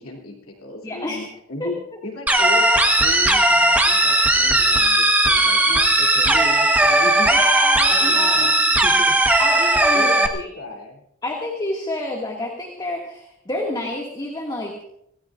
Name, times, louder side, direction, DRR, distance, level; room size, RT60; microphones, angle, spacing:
voice 1, 0.0-1.8 2.0-7.3 7.9-8.5 8.8-9.1 9.9-11.0, left 2 dB, 70° left, 0 dB, 3.0 m, -34 dB
voice 2, 0.8-1.2 1.6-1.7 7.3-8.7 9.4-10.5 11.2-14.8, left 2 dB, 20° left, -1 dB, 2.0 m, -29 dB
sound 1, 2.3-10.3, right 1 dB, 10° right, 1.2 m, -17 dB
26.0 x 17.5 x 2.5 m, 0.73 s
head